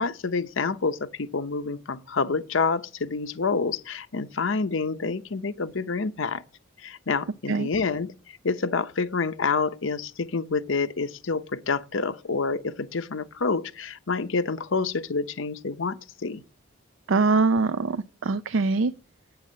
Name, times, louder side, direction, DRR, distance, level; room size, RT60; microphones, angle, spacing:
voice 1, 0.0-6.4 6.8-8.1 8.4-16.4, left 4 dB, 65° left, 0.7 m, -28 dB
voice 2, 17.1-18.9, right 3 dB, 65° right, 0.5 m, -23 dB
8.8 x 6.9 x 7.5 m
head